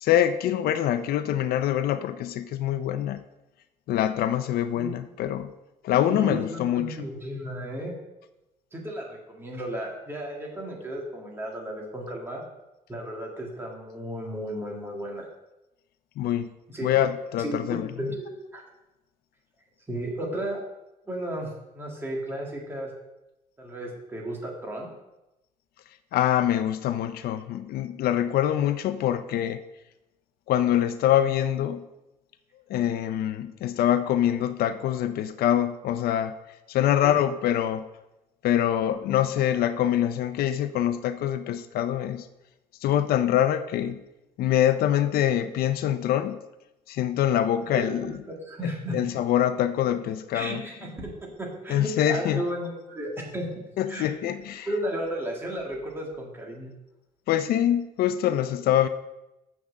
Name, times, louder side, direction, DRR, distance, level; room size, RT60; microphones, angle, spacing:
voice 1, 0.0-3.2 3.9-5.5 5.8-7.1 16.2-16.5 16.8-18.1 26.1-29.6 30.5-31.9 32.7-36.4 36.7-37.9 38.4-42.3 42.8-44.0 44.4-46.4 46.9-48.1 48.9-50.6 51.7-52.4 53.8-54.7 57.3-58.9, left 11 dB, 75° left, 12 dB, 0.5 m, -24 dB
voice 2, 6.0-8.0 8.7-12.4 12.9-15.3 16.7-17.0 17.4-18.6 19.9-20.6 21.1-22.9 23.6-24.9 37.0-37.2 47.7-49.0 50.3-51.1 51.4-53.5 53.9-54.1 54.6-56.7, right 1 dB, 15° right, -1 dB, 1.9 m, -34 dB
7.4 x 6.0 x 6.4 m, 0.96 s
cardioid pair, 160°, 16 cm